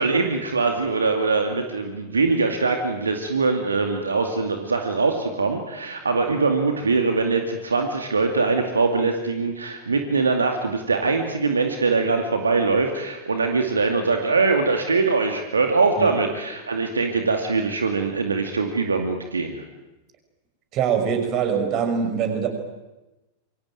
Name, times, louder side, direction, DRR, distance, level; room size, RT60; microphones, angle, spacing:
voice 1, 0.0-19.6, right 4 dB, 75° right, 4 dB, 2.4 m, -22 dB
voice 2, 20.7-22.5, right 7 dB, 35° right, 6 dB, 6.0 m, -23 dB
27.0 x 23.5 x 9.2 m, 1.0 s
figure-of-eight pair, 90°, 0 cm